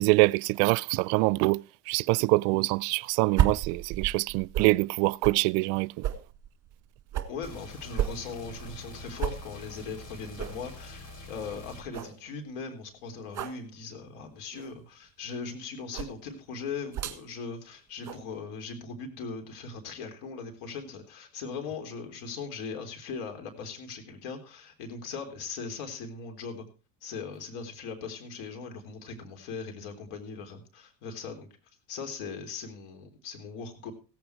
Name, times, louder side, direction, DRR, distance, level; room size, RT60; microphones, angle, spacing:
voice 1, 0.0-5.9, right 24 dB, 65° right, 0.5 m, -25 dB
sound 1, 3.3-4.8 5.2-5.4 6.0-7.4 8.0-8.9 9.2-9.4 9.8-9.9 10.4-10.6 11.1-11.2 11.5-11.6 11.9-12.2 13.3-13.6 14.5-14.8 15.9-16.2 16.9-17.2 18.0-18.2, right 11 dB, 40° right, 1.7 m, -31 dB
voice 2, 7.3-26.7 27.0-31.5 31.9-33.9, left 5 dB, 75° left, 3.8 m, -39 dB
sound 2, 7.4-11.8, left 2 dB, 40° left, 4.1 m, -45 dB
16.0 x 8.7 x 4.6 m
supercardioid pair, 90°, 47 cm